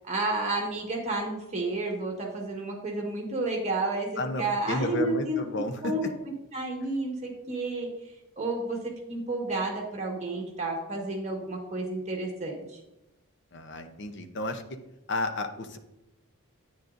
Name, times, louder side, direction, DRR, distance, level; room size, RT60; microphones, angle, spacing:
voice 1, 0.0-5.4 5.8-6.0 6.5-7.9 8.4-12.8, right 2 dB, 30° right, -1 dB, 1.6 m, -31 dB
voice 2, 4.2-5.9 13.5-14.8 15.1-15.8, left 2 dB, 50° left, 7 dB, 0.7 m, -32 dB
9.5 x 8.9 x 2.6 m, 0.94 s
head